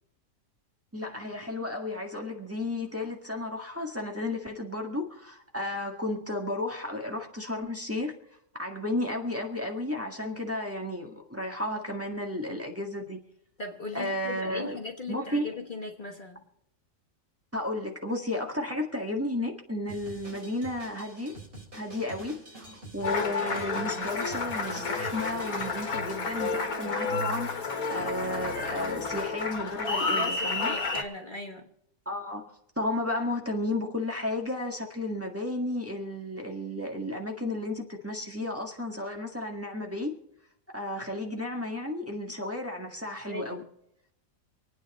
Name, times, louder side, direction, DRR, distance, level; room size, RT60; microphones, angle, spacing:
voice 1, 0.9-8.1 8.6-13.2 13.9-14.8 15.1-15.5 17.5-21.3 21.7-27.6 27.9-30.7 32.0-32.5 32.8-40.1 40.7-43.6, left 1 dB, 10° right, 1.7 m, -33 dB
voice 2, 13.6-16.4 30.0-31.7 43.3-43.7, left 3 dB, 35° left, 1.4 m, -39 dB
Drum kit, 19.9-25.8, right 2 dB, 40° right, 4.1 m, -46 dB
Applause, 23.0-31.0, left 4 dB, 90° left, 2.1 m, -31 dB
26.5 x 9.3 x 4.2 m
omnidirectional pair, 1.5 m